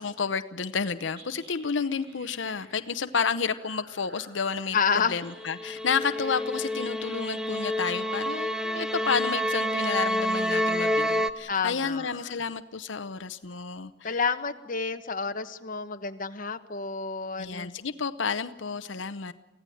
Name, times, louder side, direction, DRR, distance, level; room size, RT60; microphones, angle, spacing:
voice 1, 0.0-4.8 5.1-14.2 17.4-19.3, left 5 dB, 90° left, 11 dB, 0.8 m, -31 dB
sound 1, 1.0-7.7, right 2 dB, 70° right, 6.3 m, -53 dB
voice 2, 4.7-5.2 11.5-12.3 14.0-17.7, left 5 dB, 45° left, 8 dB, 1.2 m, -29 dB
sound 2, 5.4-11.3, equal, 5° right, 0.9 m, -28 dB
24.5 x 16.5 x 9.2 m, 1.1 s
head